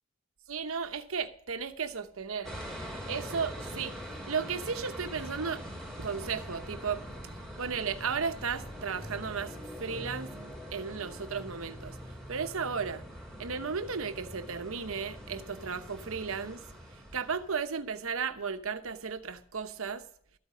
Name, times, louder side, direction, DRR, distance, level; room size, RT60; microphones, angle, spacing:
voice 1, 0.5-2.6 3.1-5.6 6.0-7.0 7.6-10.3 10.7-12.0 12.3-13.0 13.4-16.6 17.1-20.0, right 5 dB, 85° right, 0.9 m, -34 dB
sound 1, 2.4-17.6, equal, ahead, 3.3 m, -43 dB
13.0 x 8.4 x 5.0 m
head